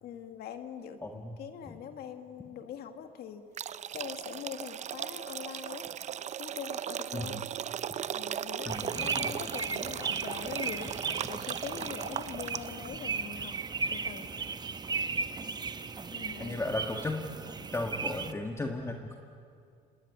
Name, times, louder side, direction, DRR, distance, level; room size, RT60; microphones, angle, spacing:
voice 1, 0.0-3.5 3.9-5.9 6.4-7.4 8.1-10.9 11.3-13.5 13.9-14.3 16.1-16.6, left 8 dB, 70° left, 7 dB, 1.7 m, -43 dB
voice 2, 1.0-1.4 1.7-1.8 7.1-7.4 8.7-9.3 16.4-17.2 17.7-19.2, left 2 dB, 15° left, 3 dB, 1.7 m, -35 dB
sound 1, 3.5-12.9, right 9 dB, 45° right, 0.6 m, -37 dB
sound 2, 8.7-18.3, right 4 dB, 25° right, 0.9 m, -36 dB
26.5 x 20.0 x 8.6 m, 2.3 s
cardioid pair, 110°, 17 cm